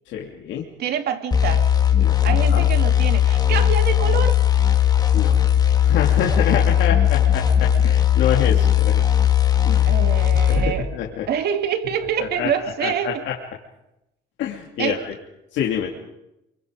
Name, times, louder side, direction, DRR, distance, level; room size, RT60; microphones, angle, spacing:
voice 1, 0.1-0.7 2.0-2.6 5.1-5.4 5.8-9.0 9.6-10.0 10.5-11.3 12.2-12.5 12.8-13.3 14.4-15.1 15.5-15.9, left 9 dB, 75° left, -1 dB, 2.8 m, -27 dB
voice 2, 0.8-1.7 2.2-4.4 6.1-6.4 9.8-10.9 11.3-13.2 14.8-15.0, right 8 dB, 55° right, 7 dB, 2.3 m, -26 dB
sound 1, 1.3-10.8, left 9 dB, 20° left, 2.0 m, -18 dB
28.5 x 24.0 x 5.3 m, 0.88 s
cardioid pair, 155°, 19 cm